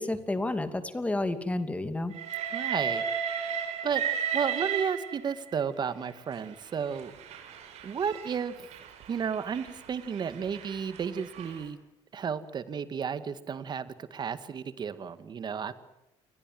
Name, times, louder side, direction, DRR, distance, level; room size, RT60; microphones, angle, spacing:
voice 1, 0.0-2.1, left 2 dB, 10° left, 9 dB, 2.6 m, -30 dB
Train, 2.1-5.5 6.4-11.6, right 8 dB, 70° right, 5.8 m, -35 dB
voice 2, 2.5-3.0 3.4-4.0 4.3-7.1 7.8-8.7 9.1-11.8 12.1-15.7, right 7 dB, 40° right, 12 dB, 2.1 m, -33 dB
28.0 x 22.0 x 7.8 m, 0.90 s
cardioid pair, 115°, 12 cm